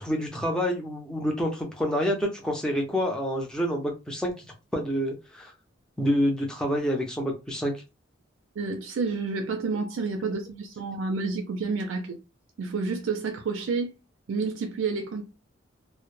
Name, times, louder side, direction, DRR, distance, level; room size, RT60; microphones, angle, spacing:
voice 1, 0.0-4.5 4.7-5.5 6.0-7.7, equal, 5° left, 0.5 m, -27 dB
voice 2, 8.6-12.2 12.6-13.9 14.3-15.2, right 4 dB, 85° right, 0.4 m, -29 dB
2.1 x 2.0 x 3.1 m
head